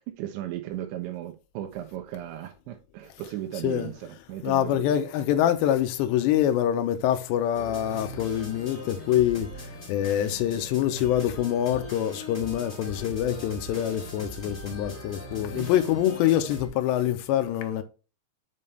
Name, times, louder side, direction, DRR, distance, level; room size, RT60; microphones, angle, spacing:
voice 1, 0.0-3.9 4.3-4.9 15.5-15.7, right 13 dB, 85° right, 3.3 m, -36 dB
voice 2, 4.4-17.8, left 11 dB, 85° left, 2.8 m, -25 dB
sound 1, 7.5-16.7, left 1 dB, 25° left, 1.6 m, -40 dB
7.4 x 5.5 x 3.3 m
omnidirectional pair, 5.2 m